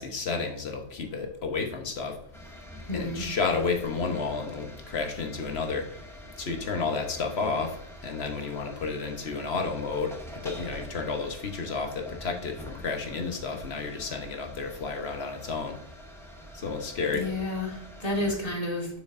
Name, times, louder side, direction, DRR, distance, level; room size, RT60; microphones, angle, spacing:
voice 1, 0.0-2.2 2.9-6.1 6.4-15.8 16.5-17.3, left 4 dB, 70° left, 4 dB, 1.3 m, -31 dB
sound 1, 2.3-18.3, equal, 5° left, 0.8 m, -45 dB
voice 2, 2.9-3.3 17.1-18.9, left 2 dB, 35° left, -1 dB, 1.8 m, -30 dB
7.0 x 6.3 x 2.6 m, 0.68 s
omnidirectional pair, 1.1 m